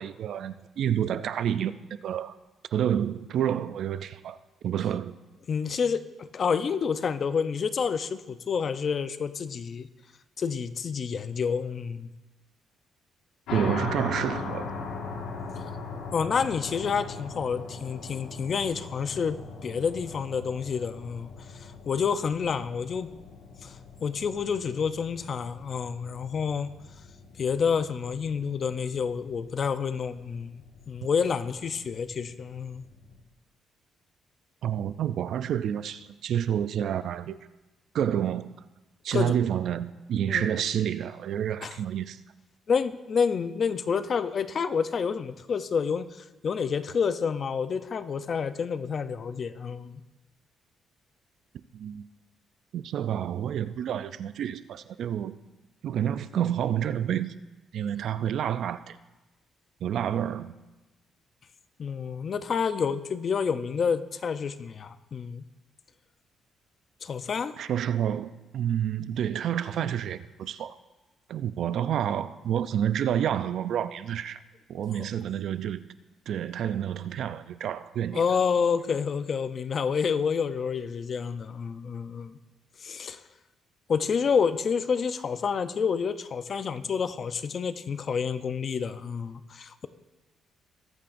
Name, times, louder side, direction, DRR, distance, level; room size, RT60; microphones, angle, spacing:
voice 1, 0.0-1.8 2.0-2.3 2.7-4.4 4.6-5.2 13.5-14.7 34.6-37.4 37.9-38.5 39.0-42.2 51.7-52.1 52.7-55.4 55.8-57.4 57.7-59.0 59.8-60.6 67.6-70.8 71.3-74.4 74.7-75.9 76.3-78.2, right 9 dB, 70° right, 0.4 m, -29 dB
voice 2, 5.5-9.9 10.4-12.1 15.6-15.7 16.1-23.1 23.6-26.7 27.4-32.8 39.1-39.3 40.3-40.4 41.6-41.8 42.7-50.0 61.8-65.4 67.0-67.5 75.0-75.1 78.1-82.4 82.8-83.2 83.9-89.9, left 6 dB, 45° left, 0.6 m, -29 dB
sound 1, 13.5-33.2, left 4 dB, 85° left, 1.7 m, -40 dB
20.5 x 8.6 x 2.6 m
cardioid pair, 95°, 0 cm